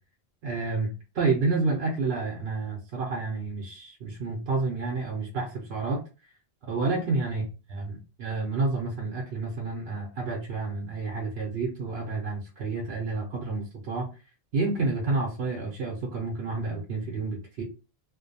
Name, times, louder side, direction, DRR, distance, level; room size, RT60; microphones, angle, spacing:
voice 1, 0.4-6.0 6.7-7.4 7.7-14.1 14.5-17.6, right 3 dB, 70° right, -1 dB, 0.9 m, -29 dB
2.5 x 2.2 x 2.6 m, 0.33 s
omnidirectional pair, 1.1 m